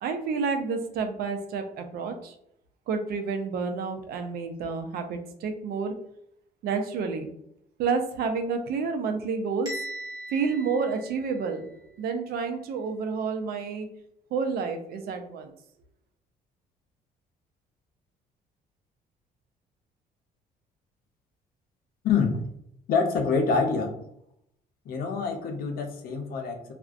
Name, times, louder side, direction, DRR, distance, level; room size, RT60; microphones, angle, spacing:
voice 1, 0.0-2.3 2.9-5.9 6.6-7.3 7.8-9.7 10.3-13.9 14.3-15.5, right 5 dB, 70° right, 6 dB, 0.5 m, -29 dB
Bell, 9.7-11.7, equal, 25° right, 1.0 m, -39 dB
voice 2, 22.0-22.4 22.9-23.9 24.9-26.7, left 5 dB, 65° left, 4 dB, 0.6 m, -26 dB
2.3 x 2.1 x 2.5 m, 0.73 s
cardioid pair, 95°, 16 cm